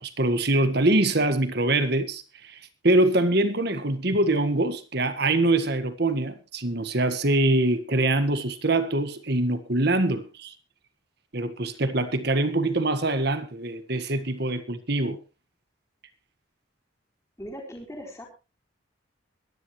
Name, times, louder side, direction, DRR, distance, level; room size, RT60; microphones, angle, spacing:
voice 1, 0.0-10.5 11.3-15.2, right 2 dB, 50° right, 1.6 m, -24 dB
voice 2, 17.4-18.3, equal, 15° left, 4.0 m, -39 dB
23.0 x 11.0 x 3.2 m
head